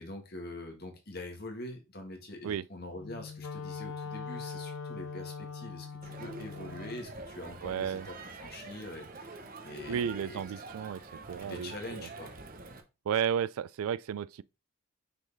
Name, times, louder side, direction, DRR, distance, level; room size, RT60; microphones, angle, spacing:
voice 1, 0.0-10.4 11.4-12.3, left 1 dB, 45° left, 1.6 m, -44 dB
Wind instrument woodwind instrument, 2.9-7.1, left 5 dB, 70° left, 0.5 m, -41 dB
Crowd, 6.0-12.8, right 3 dB, 40° right, 0.8 m, -46 dB
voice 2, 7.6-8.1 9.9-11.0 11.3-12.1 13.1-14.4, right 8 dB, 85° right, 0.3 m, -33 dB
5.9 x 3.9 x 4.0 m
head